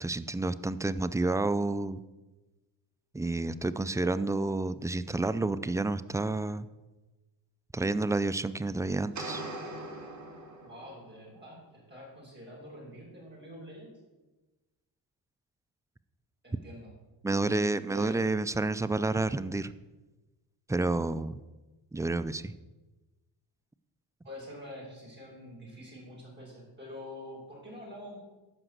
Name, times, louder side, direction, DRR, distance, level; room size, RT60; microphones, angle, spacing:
voice 1, 0.0-2.0 3.1-6.7 7.7-9.4 17.2-19.7 20.7-21.4 21.9-22.5, right 2 dB, 10° right, 13 dB, 0.3 m, -30 dB
sound 1, 9.1-11.1, right 2 dB, 40° right, 2.4 m, -40 dB
voice 2, 10.6-13.9 16.4-16.9 17.2-18.2 24.2-28.2, left 1 dB, 25° right, -5 dB, 4.4 m, -46 dB
12.0 x 5.0 x 7.9 m, 1.1 s
cardioid pair, 95°, 45 cm